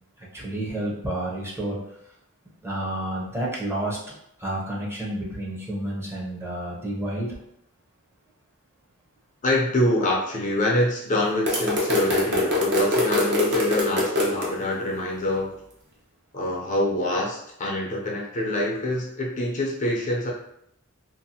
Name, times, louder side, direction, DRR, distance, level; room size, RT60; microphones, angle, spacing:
voice 1, 0.2-1.8 2.6-4.0 4.4-7.4, right 1 dB, 10° right, -5 dB, 0.6 m, -30 dB
voice 2, 9.4-15.6 16.3-20.3, left 1 dB, 35° left, -2 dB, 0.5 m, -25 dB
sound 1, 11.5-14.5, left 1 dB, 50° right, 0.7 m, -23 dB
2.7 x 2.5 x 2.7 m, 0.76 s
head